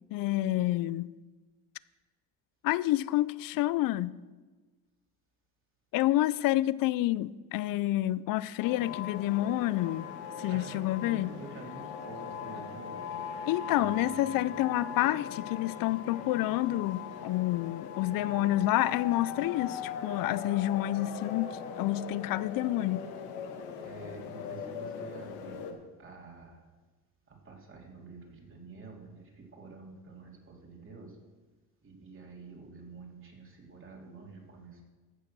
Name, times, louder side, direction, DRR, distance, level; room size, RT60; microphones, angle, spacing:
voice 1, 0.1-1.1 2.6-4.1 5.9-10.1 10.4-11.4 13.5-23.1, left 15 dB, 65° left, 0.5 m, -29 dB
sound 1, 8.6-25.7, left 6 dB, 85° left, 1.6 m, -40 dB
voice 2, 10.5-13.0 13.8-14.1 23.8-25.8 26.0-26.6 27.5-29.2 29.5-30.3 30.6-31.1 31.8-34.8, right 4 dB, 35° right, 3.2 m, -48 dB
14.5 x 6.7 x 6.1 m
supercardioid pair, 90°, 36 cm